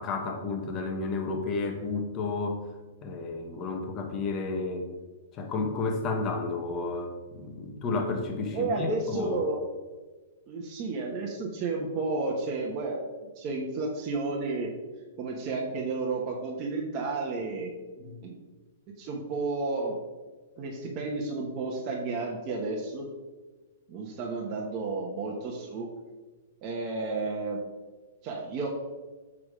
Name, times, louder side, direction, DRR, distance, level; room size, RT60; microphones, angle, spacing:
voice 1, 0.0-2.6 3.0-4.9 5.3-9.4 18.0-18.2, left 3 dB, 25° left, 3 dB, 1.1 m, -32 dB
voice 2, 8.5-9.6 10.5-13.0 13.4-14.7 15.2-17.7 18.2-18.3 19.0-19.9 20.6-23.1 23.9-25.9 26.6-27.6 28.2-28.7, right 3 dB, 30° right, -2 dB, 1.1 m, -32 dB
7.3 x 4.8 x 4.9 m, 1.3 s
hypercardioid pair, 165°, 0 cm